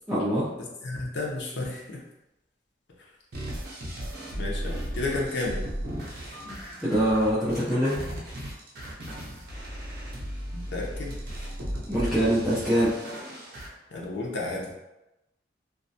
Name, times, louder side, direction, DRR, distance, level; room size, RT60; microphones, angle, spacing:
voice 1, 0.1-0.5 6.8-8.0 11.9-12.9, equal, ahead, -12 dB, 0.4 m, -24 dB
voice 2, 0.8-2.0 4.3-5.6 6.4-6.6 10.5-11.1 13.9-14.7, left 2 dB, 75° left, -2 dB, 0.5 m, -32 dB
sound 1, 3.3-13.7, equal, 55° right, 0.5 m, -36 dB
2.3 x 2.1 x 2.6 m, 0.96 s
head